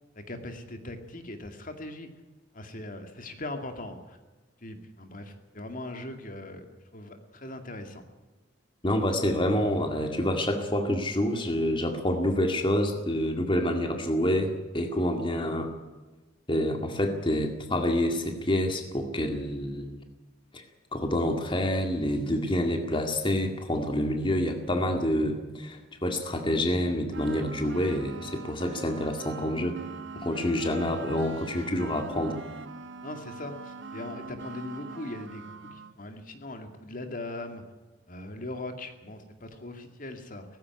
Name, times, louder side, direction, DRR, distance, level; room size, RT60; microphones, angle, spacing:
voice 1, 0.3-2.1 2.5-4.2 4.6-6.6 6.9-8.0 33.0-37.6 38.1-40.4, left 2 dB, 45° left, 6 dB, 2.2 m, -40 dB
voice 2, 8.8-15.7 16.5-20.0 20.5-20.6 20.9-29.8 30.2-32.4, left 1 dB, 25° left, 4 dB, 2.1 m, -27 dB
sound 1, 27.1-36.0, right 3 dB, 75° right, 1.7 m, -42 dB
18.5 x 15.5 x 9.7 m, 1.2 s
head